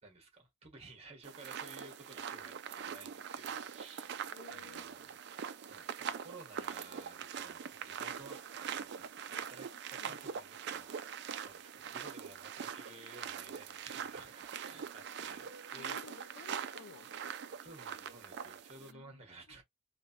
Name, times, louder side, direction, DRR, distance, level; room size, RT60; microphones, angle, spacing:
voice 1, 0.0-5.1 5.5-10.9 11.4-16.0 17.6-19.6, right 3 dB, 30° right, 1.4 m, -55 dB
sound 1, 1.2-18.9, right 7 dB, 55° right, 0.3 m, -43 dB
voice 2, 4.3-4.9 9.3-9.4 10.0-10.2 15.8-17.1 18.7-19.2, left 6 dB, 65° left, 0.3 m, -54 dB
3.2 x 2.5 x 2.7 m
head